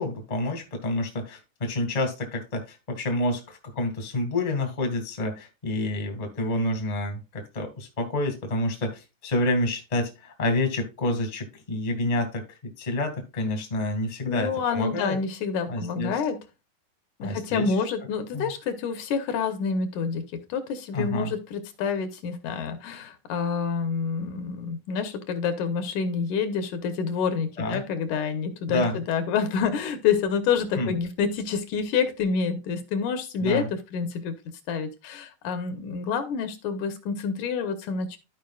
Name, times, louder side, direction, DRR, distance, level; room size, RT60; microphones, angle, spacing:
voice 1, 0.0-15.2 15.7-16.2 17.2-17.7 18.3-18.5 20.9-21.3 27.6-27.8 28.7-29.0 30.8-30.9 33.4-33.7, left 1 dB, 20° left, 4 dB, 1.2 m, -28 dB
voice 2, 14.3-16.4 17.2-33.6 33.9-34.3 34.7-38.2, left 6 dB, 75° left, 8 dB, 2.4 m, -28 dB
13.5 x 5.1 x 2.3 m, 0.27 s
omnidirectional pair, 3.7 m